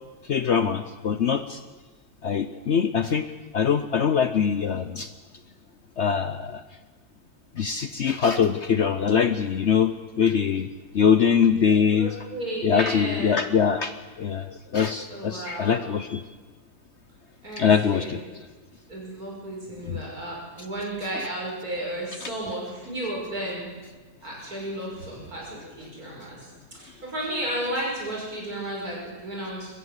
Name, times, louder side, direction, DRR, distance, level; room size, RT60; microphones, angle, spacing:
voice 1, 0.3-1.6 2.2-3.3 3.5-5.1 6.0-6.6 7.6-10.7 10.9-12.1 12.6-16.2 17.6-18.2 19.9-20.0 22.2-22.3, left 7 dB, 55° left, 11 dB, 0.9 m, -23 dB
voice 2, 11.9-13.4 15.1-15.8 17.4-18.1 18.9-23.7 24.2-26.4 26.7-29.7, right 1 dB, 65° right, -3 dB, 6.5 m, -33 dB
23.0 x 14.0 x 8.1 m, 1.3 s
omnidirectional pair, 1.7 m